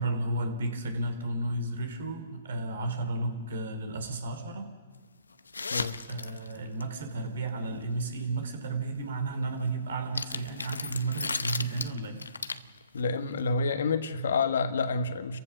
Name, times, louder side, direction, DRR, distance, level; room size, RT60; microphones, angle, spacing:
voice 1, 0.0-4.7 6.1-12.2, right 2 dB, 70° right, 6 dB, 3.4 m, -33 dB
sound 1, 5.4-6.8 10.0-13.0 13.3-13.4, left 4 dB, 90° left, 0.8 m, -35 dB
voice 2, 12.9-15.4, left 4 dB, 70° left, 10 dB, 1.5 m, -28 dB
29.5 x 15.5 x 6.2 m, 1.4 s
hypercardioid pair, 125°, 0 cm